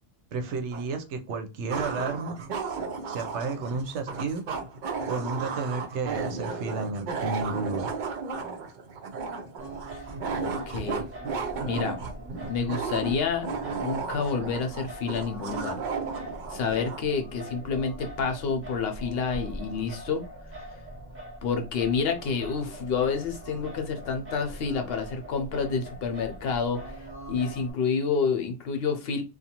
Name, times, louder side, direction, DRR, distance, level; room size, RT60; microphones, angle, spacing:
voice 1, 0.3-2.4 3.1-4.4 5.1-7.9, right 4 dB, 85° right, 0.9 m, -32 dB
sound 1, 0.7-0.8 1.7-17.1, right 5 dB, 60° right, 0.6 m, -34 dB
Singing, 9.6-27.7, right 1 dB, 15° right, 0.7 m, -42 dB
voice 2, 10.4-11.1 11.7-12.0 12.5-15.8 16.5-20.2 21.4-27.0 27.3-29.2, left 5 dB, 65° left, 0.8 m, -29 dB
2.5 x 2.3 x 2.8 m
omnidirectional pair, 1.1 m